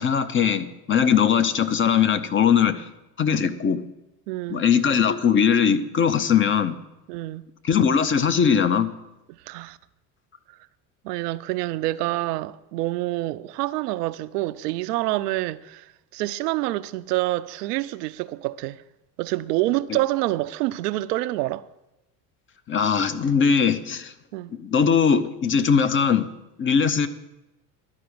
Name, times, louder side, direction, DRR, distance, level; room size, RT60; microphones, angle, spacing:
voice 1, 0.0-2.8 3.2-3.8 4.5-6.8 7.6-8.9 19.9-20.0 22.7-24.1 24.5-26.3 26.6-27.1, left 7 dB, 25° left, 0.6 m, -20 dB
voice 2, 4.3-4.6 7.1-7.4 9.5-9.8 11.0-15.8 16.1-18.8 19.2-21.6 24.3-24.5, right 17 dB, 80° right, 0.5 m, -27 dB
11.5 x 4.8 x 7.8 m
hypercardioid pair, 85°, 47 cm